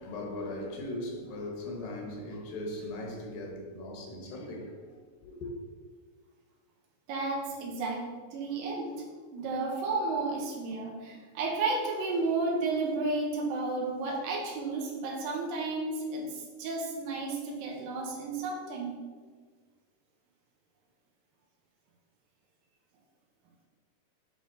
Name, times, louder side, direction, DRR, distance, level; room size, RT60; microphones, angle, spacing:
voice 1, 0.0-5.0 5.2-5.5, left 1 dB, 80° left, 2.8 m, -39 dB
voice 2, 7.1-8.0 8.3-9.0 9.3-19.0, right 3 dB, 90° right, 2.8 m, -32 dB
10.0 x 3.5 x 3.9 m
omnidirectional pair, 3.9 m